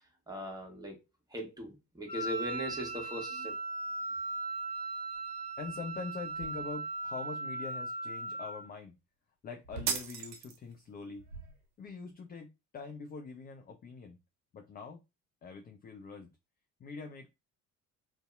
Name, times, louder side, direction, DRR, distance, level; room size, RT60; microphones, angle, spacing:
voice 1, 0.3-1.0 1.3-3.6, equal, 10° right, 1.0 m, -39 dB
Wind instrument woodwind instrument, 2.1-8.7, right 3 dB, 90° left, 0.7 m, -38 dB
sound 1, 5.1-5.2 5.6-7.1 9.6-10.1 10.9-12.1, right 3 dB, 85° right, 0.6 m, -49 dB
voice 2, 5.6-8.9 9.4-11.2 11.8-14.2 14.5-15.0 15.4-16.3 16.8-17.3, left 5 dB, 20° left, 0.4 m, -44 dB
sound 2, 9.9-10.9, right 6 dB, 60° right, 0.8 m, -35 dB
2.6 x 2.1 x 2.3 m
figure-of-eight pair, 55°, 45 cm